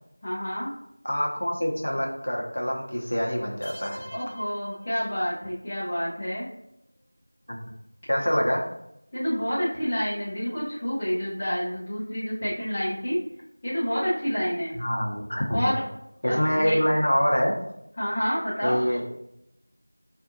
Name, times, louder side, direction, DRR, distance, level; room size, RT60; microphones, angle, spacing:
voice 1, 0.2-0.7 4.1-6.5 9.1-13.2 13.6-14.8 15.5-15.8 16.3-16.8 18.0-18.8, equal, 10° left, -12 dB, 0.4 m, -28 dB
voice 2, 1.0-4.1 7.5-7.6 8.1-8.6 14.8-15.7 16.2-17.5 18.6-19.0, equal, 50° left, -1 dB, 0.7 m, -25 dB
sound 1, 3.6-5.6, equal, 90° right, 0.5 m, -45 dB
4.6 x 2.5 x 2.6 m, 0.81 s
figure-of-eight pair, 175°, 0 cm